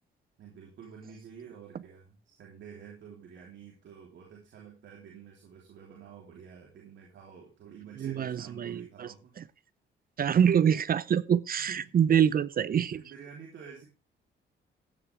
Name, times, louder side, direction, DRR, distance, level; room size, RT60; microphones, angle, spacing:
voice 1, 0.4-9.3 11.6-12.0 12.8-13.9, right 7 dB, 70° right, 3.5 m, -49 dB
voice 2, 8.0-9.1 10.2-13.0, right 8 dB, 50° right, 0.7 m, -25 dB
15.0 x 10.0 x 3.5 m
cardioid pair, 90°, 20 cm